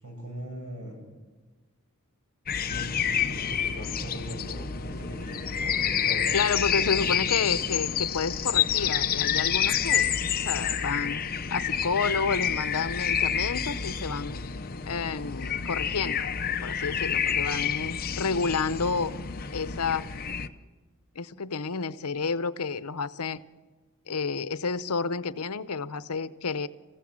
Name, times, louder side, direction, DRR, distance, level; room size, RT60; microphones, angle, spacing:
voice 1, 0.0-1.0 2.7-6.4 6.7-7.2, equal, 90° right, 3 dB, 6.9 m, -40 dB
sound 1, 2.5-20.5, left 8 dB, 40° left, 0.8 m, -28 dB
voice 2, 6.3-10.1 10.4-11.2 11.5-14.4 14.9-16.3 16.6-19.1 19.5-20.1 21.2-23.4 24.1-26.7, left 5 dB, 90° left, 14 dB, 0.8 m, -30 dB
27.5 x 16.0 x 7.5 m, 1.3 s
head